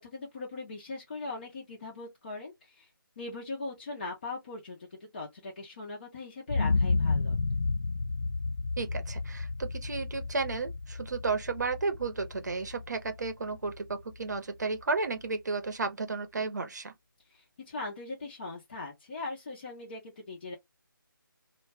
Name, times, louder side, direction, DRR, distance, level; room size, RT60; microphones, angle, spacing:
voice 1, 0.0-2.9 3.2-7.4 17.3-20.5, left 3 dB, 25° left, 0.5 m, -40 dB
sound 1, 6.5-14.4 14.8-14.9, left 3 dB, 75° left, 0.4 m, -32 dB
voice 2, 8.8-16.9, right 4 dB, 50° right, 0.7 m, -33 dB
2.2 x 2.1 x 3.3 m
figure-of-eight pair, 160°, 12 cm